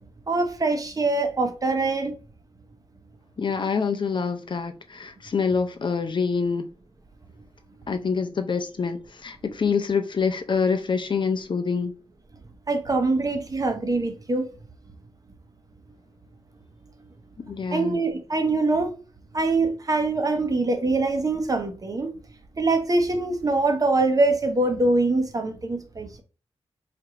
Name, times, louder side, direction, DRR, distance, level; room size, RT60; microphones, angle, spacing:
voice 1, 0.3-2.1 12.7-14.5 17.7-18.9 19.3-22.1 22.6-26.2, right 2 dB, 35° right, 0.8 m, -23 dB
voice 2, 3.4-6.7 7.9-11.9 17.5-18.0, left 5 dB, 50° left, 0.5 m, -26 dB
4.4 x 2.5 x 2.9 m
cardioid pair, 80°, 11 cm